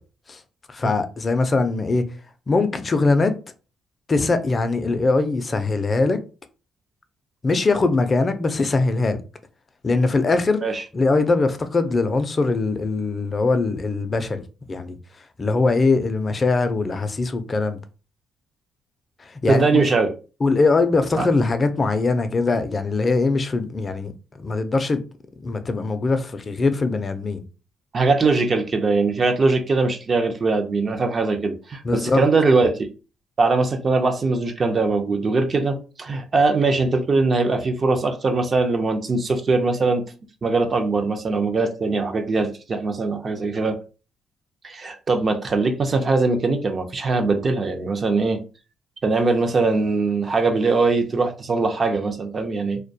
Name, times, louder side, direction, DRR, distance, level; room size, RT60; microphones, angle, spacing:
voice 1, 0.7-2.1 2.5-3.4 4.1-6.2 7.4-9.2 9.8-10.6 10.9-14.4 14.7-15.0 15.4-17.8 19.4-19.8 20.4-24.1 24.4-25.0 25.4-27.4 31.8-32.2, left 3 dB, 35° left, 0.4 m, -21 dB
voice 2, 19.5-20.1 21.2-21.3 27.9-32.9 33.4-40.0 40.4-43.8 44.6-48.4 49.0-52.8, right 3 dB, 40° right, 0.4 m, -21 dB
2.2 x 2.1 x 2.6 m
cardioid pair, 90°, 0 cm